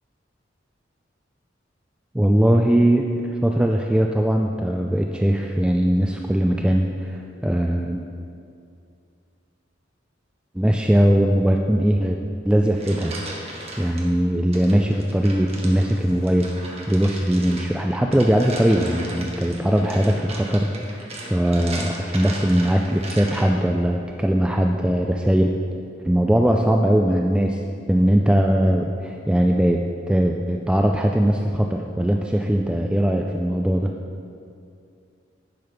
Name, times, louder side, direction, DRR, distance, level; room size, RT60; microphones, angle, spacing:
voice 1, 2.1-8.0 10.6-12.2 12.4-13.2 13.8-16.5 16.9-20.7 21.3-25.5 26.0-27.6 27.9-29.8 30.1-33.9, equal, 5° right, 2 dB, 0.3 m, -20 dB
sound 1, 12.5-14.0 14.5-23.7, right 2 dB, 35° right, 1.2 m, -37 dB
10.5 x 5.1 x 5.7 m, 2.4 s
head